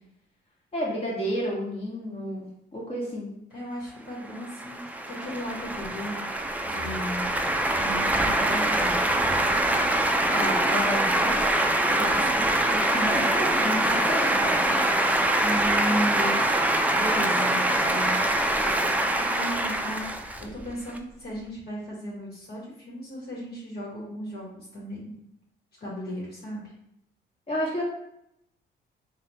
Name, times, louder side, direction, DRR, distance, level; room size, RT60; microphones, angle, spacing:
voice 1, 0.7-2.5 2.7-3.3 10.3-11.4 13.1-14.6 27.5-27.8, equal, 30° left, -5 dB, 1.4 m, -31 dB
voice 2, 3.5-7.3 7.8-9.4 11.9-13.3 15.4-16.4 16.9-18.3 18.6-25.1 25.8-26.6, equal, 55° left, -5 dB, 1.3 m, -35 dB
sound 1, 4.3-21.0, right 1 dB, 10° right, 0.4 m, -24 dB
3.2 x 2.3 x 4.1 m, 0.78 s
cardioid pair, 90°, 20 cm